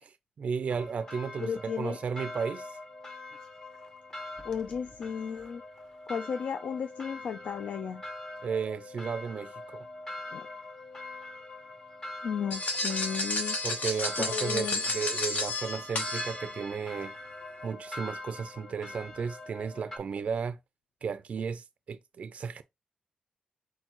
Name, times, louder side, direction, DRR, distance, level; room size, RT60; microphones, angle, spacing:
voice 1, 0.0-2.8 8.4-9.9 13.6-17.1 17.6-20.6 21.0-22.6, right 6 dB, 55° right, 0.3 m, -34 dB
sound 1, 0.7-20.0, left 2 dB, 25° left, 0.9 m, -44 dB
voice 2, 1.4-2.0 4.4-5.6 6.1-8.0 10.3-10.4 12.2-13.6 14.2-14.8, left 7 dB, 85° left, 0.4 m, -34 dB
sound 2, 12.5-16.8, left 2 dB, 65° left, 1.1 m, -32 dB
4.4 x 4.0 x 2.9 m
wide cardioid pair, 140°, 3 cm